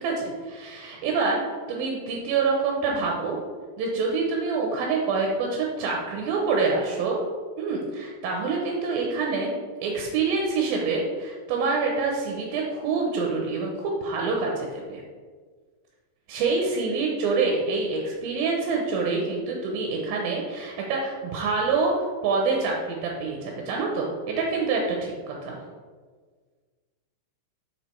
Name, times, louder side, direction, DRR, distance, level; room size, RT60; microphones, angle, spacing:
voice 1, 0.0-3.4 3.8-7.2 7.6-9.5 9.8-15.0 16.3-21.9 22.2-25.6, right 4 dB, 75° right, -1 dB, 2.3 m, -26 dB
6.7 x 5.0 x 4.4 m, 1.5 s
omnidirectional pair, 4.9 m